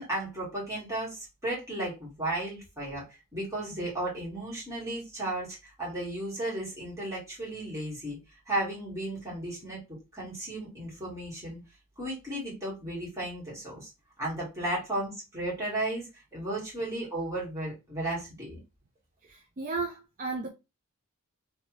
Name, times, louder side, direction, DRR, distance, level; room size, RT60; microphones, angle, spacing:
voice 1, 0.0-3.0 3.3-8.2 8.5-11.6 12.0-13.9 14.2-18.6, right 1 dB, 15° right, 2.0 m, -34 dB
voice 2, 19.3-20.5, right 3 dB, 35° right, 0.5 m, -34 dB
3.3 x 2.7 x 3.2 m
head